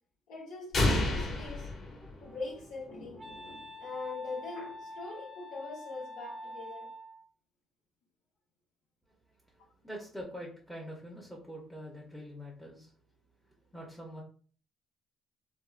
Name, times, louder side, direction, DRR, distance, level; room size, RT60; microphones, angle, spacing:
voice 1, 0.3-1.7 2.2-6.9, left 3 dB, 85° left, 1.1 m, -42 dB
sound 1, 0.7-2.7, left 2 dB, 50° left, 1.1 m, -30 dB
Wind instrument woodwind instrument, 2.0-7.3, left 1 dB, 25° right, 0.3 m, -46 dB
voice 2, 9.5-12.9 13.7-14.2, equal, 5° left, 0.7 m, -44 dB
3.5 x 2.3 x 2.4 m
cardioid pair, 110°, 0 cm